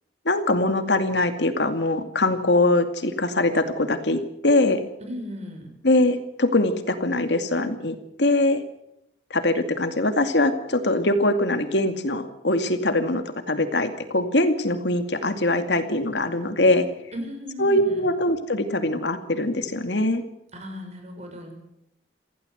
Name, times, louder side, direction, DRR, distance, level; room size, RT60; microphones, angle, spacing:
voice 1, 0.3-4.8 5.8-8.6 9.3-16.9 17.6-20.2, left 2 dB, 75° left, 8 dB, 2.4 m, -22 dB
voice 2, 5.0-5.7 17.1-18.1 20.5-21.5, equal, 40° right, 4 dB, 6.8 m, -36 dB
26.5 x 16.0 x 8.1 m, 0.82 s
head